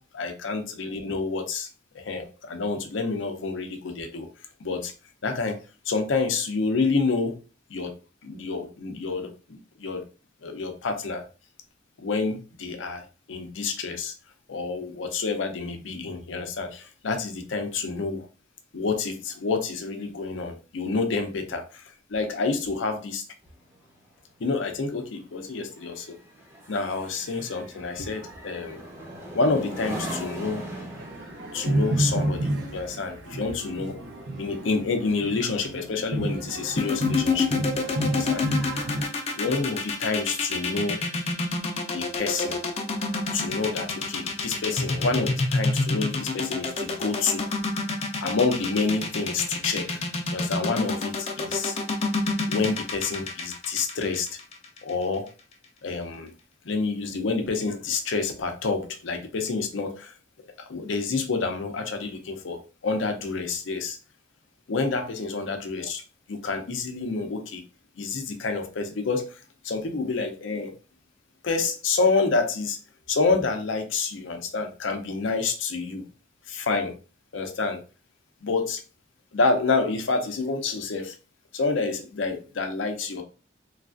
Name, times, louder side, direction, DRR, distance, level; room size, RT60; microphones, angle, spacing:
voice 1, 0.1-1.7 1.9-4.3 4.6-4.9 5.2-5.6 5.9-7.4 7.7-7.9 8.2-9.3 9.8-10.0 10.4-11.3 12.0-13.0 13.3-14.1 14.5-18.3 18.7-21.8 22.1-23.2 24.4-26.2 26.7-28.8 29.3-30.6 31.5-34.0 34.4-37.5 38.1-38.4 39.4-41.0 41.9-42.6 43.3-47.5 48.2-49.9 50.3-51.8 52.5-54.4 54.8-55.3 55.8-56.3 56.6-60.1 60.6-64.0 64.7-66.0 66.3-67.6 68.0-69.4 69.6-70.7 71.4-72.8 73.1-76.0 76.5-76.9 77.3-77.8 78.4-78.8 79.3-81.2 81.5-83.2, left 4 dB, 80° left, 0.5 m, -28 dB
sound 1, 23.4-35.1 35.5-35.8, right 1 dB, 10° right, 0.6 m, -40 dB
sound 2, 30.9-39.0, right 1 dB, 60° right, 0.5 m, -30 dB
sound 3, 36.8-54.9, left 3 dB, 35° left, 0.4 m, -27 dB
3.2 x 2.3 x 2.4 m
head